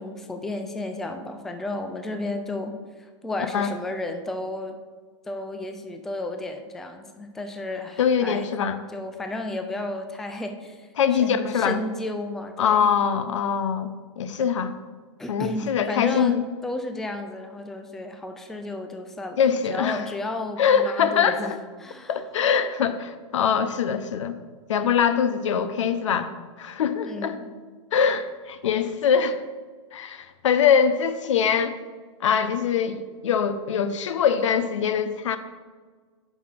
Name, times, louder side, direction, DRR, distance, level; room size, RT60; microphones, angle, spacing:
voice 1, 0.0-4.8 5.2-8.5 8.9-10.9 11.2-12.9 15.2-22.2 27.1-27.5, left 2 dB, ahead, 6 dB, 0.3 m, -33 dB
voice 2, 8.0-8.8 11.0-11.8 12.6-14.7 15.3-16.4 19.4-20.0 20.6-21.6 22.1-24.3 24.7-26.3 26.6-27.4 27.9-29.4 29.9-31.8 32.2-35.4, left 7 dB, 80° left, 11 dB, 0.7 m, -23 dB
5.6 x 4.7 x 5.9 m, 1.5 s
hypercardioid pair, 150°, 15 cm